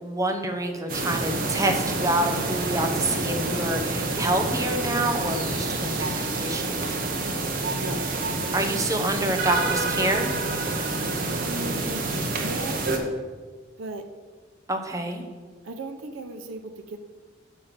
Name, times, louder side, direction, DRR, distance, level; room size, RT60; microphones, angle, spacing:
voice 1, 0.0-6.8 8.5-10.4 14.7-15.2, right 1 dB, 15° right, 4 dB, 0.8 m, -27 dB
sound 1, 0.9-13.0, right 2 dB, 45° right, 0.9 m, -28 dB
voice 2, 7.7-8.1 11.4-12.0 12.4-12.8 13.8-14.0 15.6-17.0, right 2 dB, 90° right, 6 dB, 0.6 m, -36 dB
6.3 x 5.3 x 5.9 m, 1.4 s
head